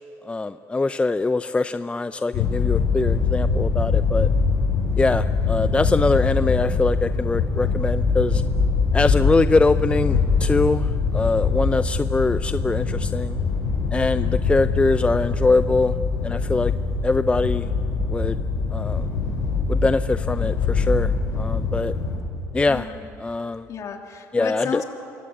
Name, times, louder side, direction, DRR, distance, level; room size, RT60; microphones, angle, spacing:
voice 1, 0.2-4.3 5.0-8.4 8.9-13.4 13.9-15.9 16.2-16.7 17.0-17.7 18.1-18.4 18.7-19.1 19.7-21.9 22.5-22.9 23.2-23.7 24.3-24.8, left 3 dB, 15° left, 12 dB, 0.5 m, -23 dB
sound 1, 2.3-22.2, left 4 dB, 80° left, 7.0 m, -23 dB
voice 2, 22.5-23.0 23.7-24.8, left 7 dB, 50° left, 3 dB, 3.1 m, -33 dB
26.0 x 21.0 x 8.5 m, 2.9 s
supercardioid pair, 95°, 7 cm